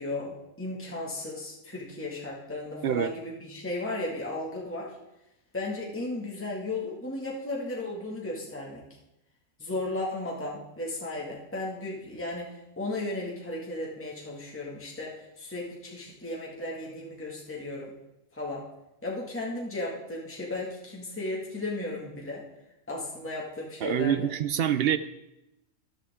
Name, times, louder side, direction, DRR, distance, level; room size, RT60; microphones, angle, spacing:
voice 1, 0.0-5.0 5.5-8.8 9.6-17.9 18.3-18.7 19.0-22.4 22.9-24.3, left 2 dB, 10° left, -4 dB, 2.0 m, -35 dB
voice 2, 23.8-25.0, right 9 dB, 60° right, 13 dB, 0.6 m, -25 dB
14.0 x 11.5 x 3.7 m, 0.90 s
omnidirectional pair, 1.4 m